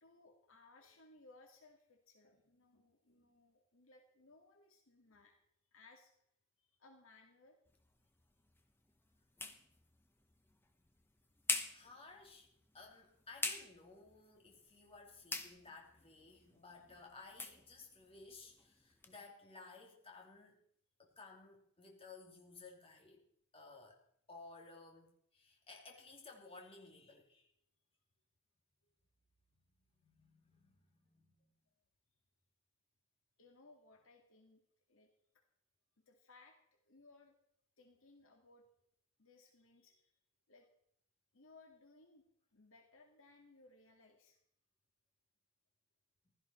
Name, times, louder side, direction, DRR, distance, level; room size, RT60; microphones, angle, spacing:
voice 1, 0.0-5.4 5.7-6.1 6.6-7.6 28.8-28.9 30.5-30.6 33.4-34.6 34.9-35.1 35.3-35.4 36.1-36.6 36.8-37.3 37.8-38.6 39.2-40.1 40.5-40.7 41.3-42.2 42.5-44.4, left 3 dB, 65° left, 3 dB, 2.0 m, -64 dB
sound 1, 7.7-19.2, left 3 dB, 10° left, 1.1 m, -47 dB
voice 2, 11.7-20.6 21.0-23.2 23.5-24.0 24.3-27.5 29.9-31.5, left 3 dB, 25° left, 0 dB, 3.0 m, -57 dB
15.5 x 13.5 x 4.4 m, 0.69 s
head